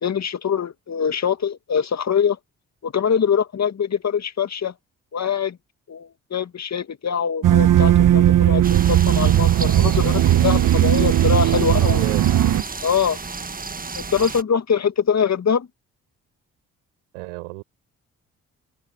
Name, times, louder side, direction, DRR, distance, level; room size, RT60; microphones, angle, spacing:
voice 1, 0.0-2.4 2.8-4.7 5.1-5.6 5.9-12.0 12.8-13.2 14.0-15.7, left 7 dB, 45° left, 2.1 m, -23 dB
sound 1, 7.4-12.6, right 12 dB, 60° right, 1.2 m, -17 dB
sound 2, 8.6-14.4, right 4 dB, 25° right, 1.4 m, -33 dB
voice 2, 11.7-12.3 17.1-17.6, right 28 dB, 90° right, 6.3 m, -33 dB
open air
hypercardioid pair, 45°, 36 cm